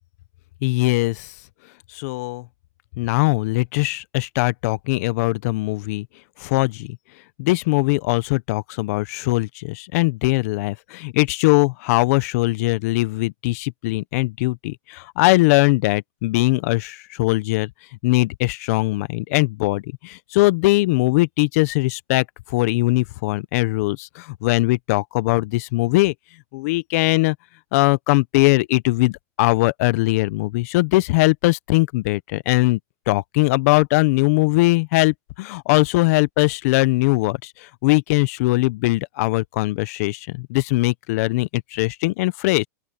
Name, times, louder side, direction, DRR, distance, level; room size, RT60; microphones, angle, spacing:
voice 1, 0.6-1.3 1.9-2.4 3.0-6.1 6.4-7.0 7.4-17.7 18.0-22.2 22.5-26.1 26.5-27.3 27.7-32.8 33.1-42.7, left 22 dB, 60° left, 0.9 m, -20 dB
open air
hypercardioid pair, 125°, 9 cm